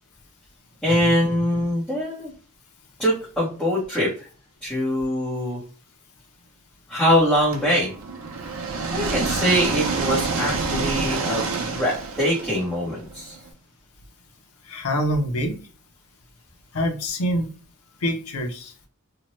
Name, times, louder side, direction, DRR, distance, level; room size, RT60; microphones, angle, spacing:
voice 1, 0.8-2.3 3.0-4.3 4.6-5.6 6.9-7.9 8.9-13.4, equal, 5° left, -7 dB, 0.7 m, -23 dB
sound 1, 7.5-13.4, right 4 dB, 65° right, 0.6 m, -28 dB
voice 2, 14.7-15.6 16.7-17.5 18.0-18.7, equal, 80° left, 5 dB, 0.6 m, -25 dB
2.8 x 2.1 x 2.9 m, 0.38 s
head